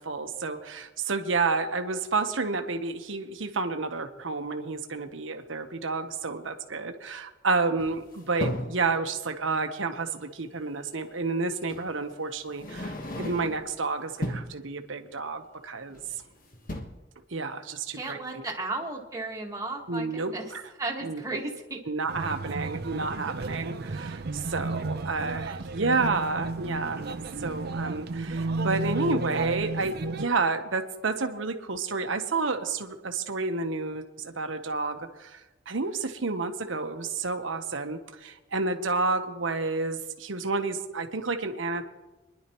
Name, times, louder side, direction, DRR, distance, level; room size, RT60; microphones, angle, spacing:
voice 1, 0.0-16.0 17.3-18.5 19.9-20.6 21.0-21.4 21.9-27.1 27.4-35.4 35.7-41.8, right 3 dB, 80° right, 7 dB, 1.1 m, -30 dB
sound 1, 7.8-8.8 10.5-10.6 11.7-11.9 12.5-13.7 14.1-14.6 15.9-16.3 16.5-16.8, left 1 dB, 50° left, 1.5 m, -35 dB
voice 2, 17.9-20.5 20.8-21.8, right 2 dB, 20° right, -1 dB, 1.8 m, -34 dB
sound 2, 22.1-30.3, right 3 dB, 55° right, 0.7 m, -33 dB
25.5 x 11.0 x 3.1 m, 1.1 s
head